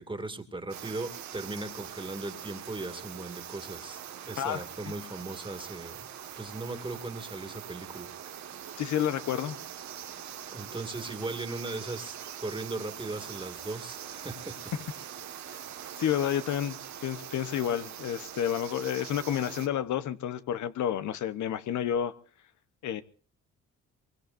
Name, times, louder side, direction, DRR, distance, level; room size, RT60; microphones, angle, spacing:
voice 1, 0.0-6.1 6.4-8.1 10.5-15.1, right 2 dB, 15° right, 8 dB, 2.3 m, -38 dB
sound 1, 0.7-19.7, right 9 dB, 65° right, 1.7 m, -43 dB
voice 2, 8.8-9.6 15.5-15.6 16.0-22.1 22.8-23.0, left 10 dB, 75° left, 12 dB, 1.0 m, -30 dB
23.5 x 22.5 x 2.6 m, 0.42 s
cardioid pair, 90°, 30 cm